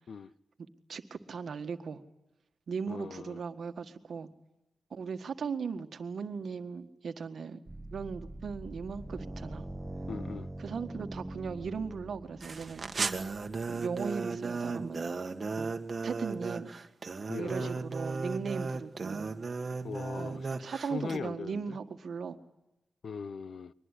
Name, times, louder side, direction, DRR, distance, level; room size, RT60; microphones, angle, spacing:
voice 1, 0.9-2.0 2.7-4.3 4.9-7.6 7.9-9.6 10.6-12.9 13.7-15.1 15.6-15.7 16.0-16.7 17.4-19.3 20.2-22.4, right 5 dB, 70° right, 1.7 m, -38 dB
voice 2, 2.9-3.4 10.1-10.5 17.3-17.7 19.8-20.5 20.9-21.8 23.0-23.7, left 5 dB, 70° left, 0.8 m, -40 dB
sound 1, 7.7-14.2, right 1 dB, 20° right, 1.7 m, -43 dB
sound 2, 12.4-21.2, right 4 dB, 50° right, 1.7 m, -35 dB
23.5 x 20.0 x 10.0 m
cardioid pair, 65°, 0 cm